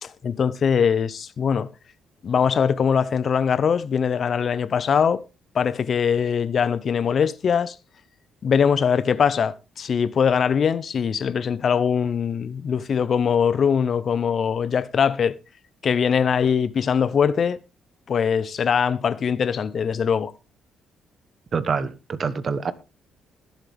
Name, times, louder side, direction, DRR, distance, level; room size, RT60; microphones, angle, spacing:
voice 1, 0.0-1.7 2.2-5.2 5.5-7.7 8.4-15.3 15.8-17.6 18.1-20.3, left 7 dB, 50° left, 0.7 m, -22 dB
voice 2, 21.5-22.7, right 5 dB, 45° right, 1.1 m, -26 dB
20.0 x 7.4 x 3.5 m
cardioid pair, 90°, 0 cm